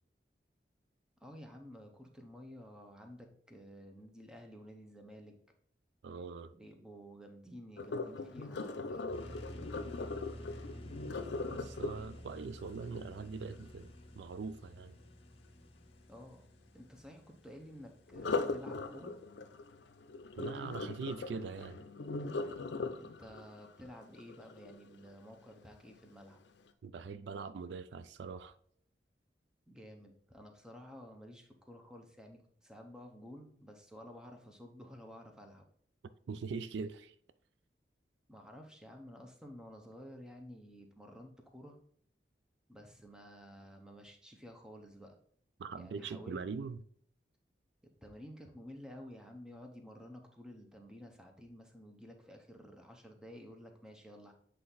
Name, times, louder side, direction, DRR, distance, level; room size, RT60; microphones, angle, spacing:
voice 1, 1.2-5.3 6.5-9.1 16.1-16.5 16.7-19.1 23.0-26.4 29.7-35.7 38.3-41.8 42.7-45.2 45.7-46.4 47.8-54.3, equal, 5° right, 0.7 m, -52 dB
voice 2, 6.0-6.5 11.5-14.9 20.4-21.8 26.8-28.5 36.3-37.1 45.6-46.8, right 5 dB, 80° right, 0.3 m, -42 dB
Sink (filling or washing), 7.8-13.7 18.1-25.1 25.7-26.0 26.5-26.6, left 3 dB, 80° left, 0.5 m, -40 dB
sound 1, 9.1-18.6, left 1 dB, 30° left, 0.7 m, -50 dB
7.6 x 3.4 x 4.0 m
head